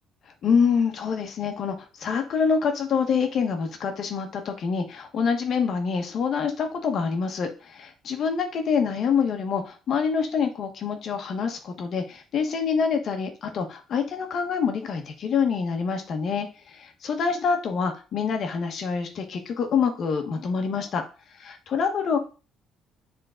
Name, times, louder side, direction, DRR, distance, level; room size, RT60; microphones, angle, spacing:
voice 1, 0.4-21.0 21.4-22.2, left 6 dB, 55° left, 5 dB, 1.2 m, -26 dB
7.5 x 3.7 x 3.8 m, 0.33 s
cardioid pair, 115°, 0 cm